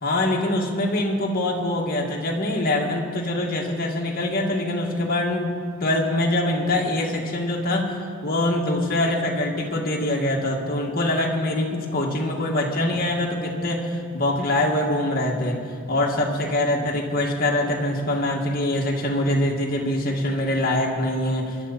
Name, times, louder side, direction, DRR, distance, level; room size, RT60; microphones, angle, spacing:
voice 1, 0.0-5.5 5.8-21.7, left 1 dB, 45° left, -1 dB, 2.0 m, -24 dB
23.5 x 11.5 x 4.2 m, 2.2 s
head